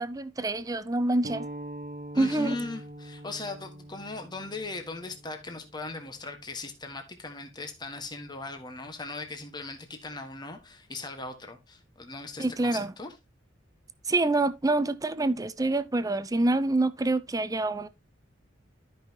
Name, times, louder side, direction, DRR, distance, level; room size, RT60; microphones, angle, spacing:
voice 1, 0.0-1.5 2.2-2.6 12.4-12.9 14.1-17.9, right 2 dB, 20° right, 0.6 m, -26 dB
sound 1, 1.2-6.4, right 1 dB, 50° right, 0.9 m, -43 dB
voice 2, 2.1-13.1, left 3 dB, 25° left, 1.5 m, -39 dB
13.0 x 5.6 x 2.9 m
head